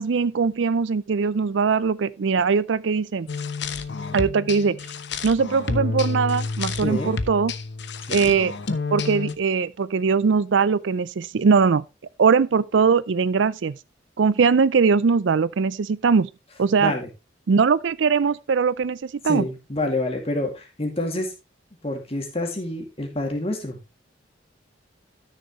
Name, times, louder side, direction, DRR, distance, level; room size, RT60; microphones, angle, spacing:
voice 1, 0.0-3.3 4.1-4.8 5.2-7.5 8.1-8.5 8.9-11.8 12.2-13.8 14.2-16.3 16.6-16.9 17.5-19.4, right 5 dB, 75° right, 0.5 m, -21 dB
sound 1, 3.3-9.3, left 4 dB, 65° left, 0.9 m, -29 dB
voice 2, 6.8-7.1 8.1-8.3 16.8-17.1 19.2-21.3 21.8-23.8, left 1 dB, 30° left, 2.4 m, -27 dB
13.0 x 6.6 x 3.1 m
head